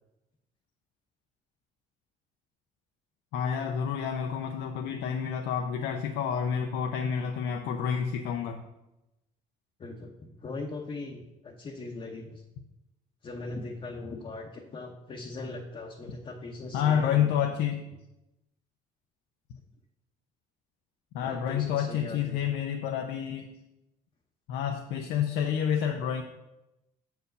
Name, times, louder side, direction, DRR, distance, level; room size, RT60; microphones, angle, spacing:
voice 1, 3.3-8.6 16.7-17.8 21.1-23.5 24.5-26.2, left 8 dB, 85° left, 4 dB, 0.6 m, -29 dB
voice 2, 9.8-12.4 13.2-17.3 21.2-22.4, left 3 dB, 35° left, -1 dB, 0.9 m, -40 dB
6.7 x 4.7 x 6.4 m, 0.95 s
cardioid pair, 110°, 17 cm